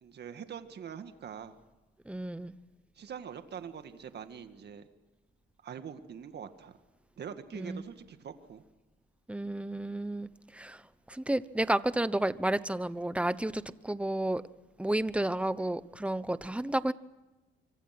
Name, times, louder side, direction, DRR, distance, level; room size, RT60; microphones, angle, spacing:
voice 1, 0.0-1.6 3.0-4.8 5.6-6.8 7.2-8.6, right 7 dB, 55° right, 9 dB, 1.9 m, -44 dB
voice 2, 2.1-2.5 7.5-7.9 9.3-10.8 11.1-14.4 14.8-16.9, right 1 dB, 5° right, 15 dB, 1.0 m, -31 dB
25.5 x 24.5 x 6.0 m, 1.1 s
cardioid pair, 90°, 20 cm